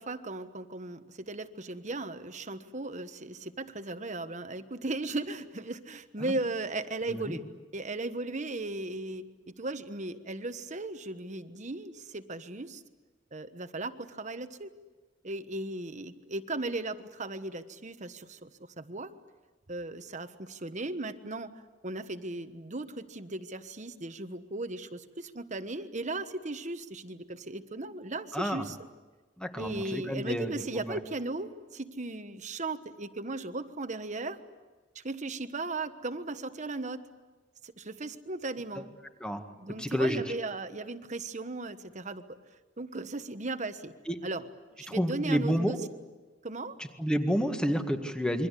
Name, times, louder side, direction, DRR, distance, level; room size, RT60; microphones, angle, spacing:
voice 1, 0.0-7.4 7.7-9.2 9.6-12.8 13.3-14.7 15.2-18.5 18.8-19.1 19.7-21.5 21.8-28.8 29.6-34.4 34.9-37.1 37.6-38.9 39.6-42.4 42.8-43.9 44.2-44.5 44.7-45.8 46.4-46.8, right 2 dB, 40° right, 10 dB, 1.3 m, -37 dB
voice 2, 28.3-28.6 29.4-30.5 30.9-31.0 39.2-39.4 39.8-40.2 44.1-44.2 44.9-45.8 47.0-48.5, equal, 5° left, 6 dB, 1.9 m, -29 dB
28.0 x 23.5 x 8.4 m, 1.3 s
head